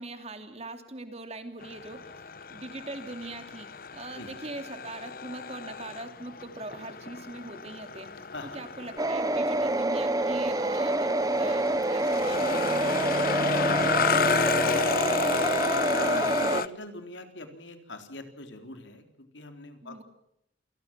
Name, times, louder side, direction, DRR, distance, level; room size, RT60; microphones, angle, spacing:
voice 1, 0.0-2.1 2.5-8.3 8.5-13.0 13.3-14.9 19.8-20.0, right 2 dB, 35° right, 7 dB, 2.8 m, -41 dB
sound 1, 1.6-16.7, left 5 dB, 50° left, 0.9 m, -32 dB
sound 2, 9.0-16.6, right 2 dB, 20° right, 0.8 m, -27 dB
voice 2, 15.9-20.0, left 1 dB, 85° left, 6 dB, 3.8 m, -41 dB
28.0 x 19.5 x 7.5 m, 0.81 s
head